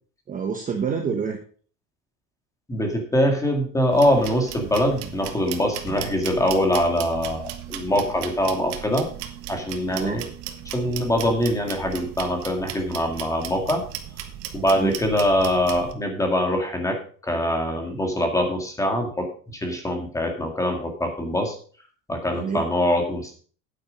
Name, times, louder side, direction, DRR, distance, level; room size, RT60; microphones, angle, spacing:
voice 1, 0.3-1.4 9.9-10.2 14.8-15.0 22.3-22.7, right 6 dB, 20° right, 3 dB, 1.0 m, -27 dB
voice 2, 2.7-7.4 7.7-9.1 9.5-10.2 10.7-13.8 14.5-17.0 17.2-21.6 22.1-23.3, left 1 dB, 10° left, 3 dB, 2.0 m, -23 dB
sound 1, 3.9-15.9, right 11 dB, 65° right, 1.5 m, -36 dB
sound 2, 5.9-7.8, left 2 dB, 70° left, 4.3 m, -41 dB
9.2 x 9.0 x 5.1 m, 0.42 s
cardioid pair, 170°, 40 cm